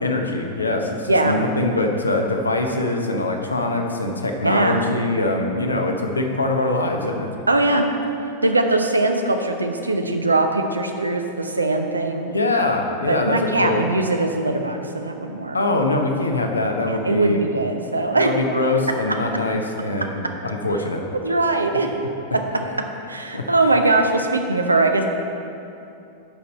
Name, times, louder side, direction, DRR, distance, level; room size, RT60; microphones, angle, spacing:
voice 1, 0.0-7.3 12.2-13.8 15.5-17.4 18.1-21.0 23.3-23.4, left 2 dB, 80° left, 3 dB, 0.8 m, -23 dB
voice 2, 1.1-1.4 4.4-4.9 7.5-7.9 8.4-12.3 13.1-15.6 16.8-18.3 19.1-19.5 20.0-20.1 21.2-21.9 22.3-22.4 23.0-25.0, right 2 dB, 80° right, 5 dB, 0.7 m, -21 dB
10.5 x 5.4 x 4.2 m, 2.7 s
figure-of-eight pair, 90°, 0 cm